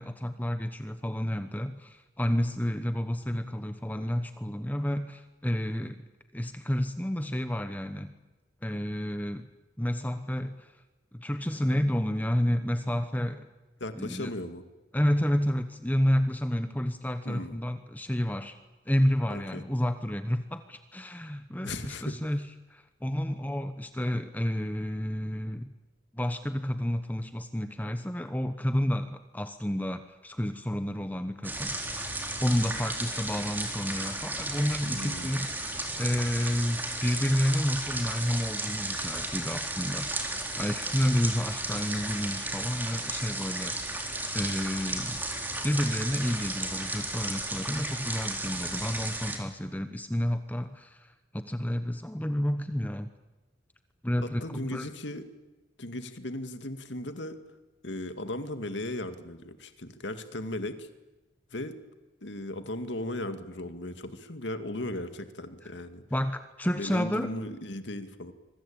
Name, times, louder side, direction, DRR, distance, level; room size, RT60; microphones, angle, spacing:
voice 1, 0.0-6.0 6.3-8.1 8.6-9.5 9.8-10.7 11.1-13.5 14.0-14.3 14.9-18.6 18.9-25.7 26.1-32.1 32.4-35.5 36.0-45.2 45.6-53.1 54.0-54.9 65.6-65.7 66.1-67.3, equal, 10° left, 9 dB, 1.0 m, -30 dB
voice 2, 13.8-14.6 17.3-17.6 19.3-19.6 21.6-22.2 34.8-35.4 54.2-55.2 55.8-57.4 57.8-60.9 61.5-61.7 62.2-66.0 66.8-68.3, left 1 dB, 90° left, 9 dB, 2.1 m, -37 dB
sound 1, 31.4-49.4, right 2 dB, 10° right, 3.9 m, -34 dB
26.0 x 23.5 x 8.8 m, 1.1 s
head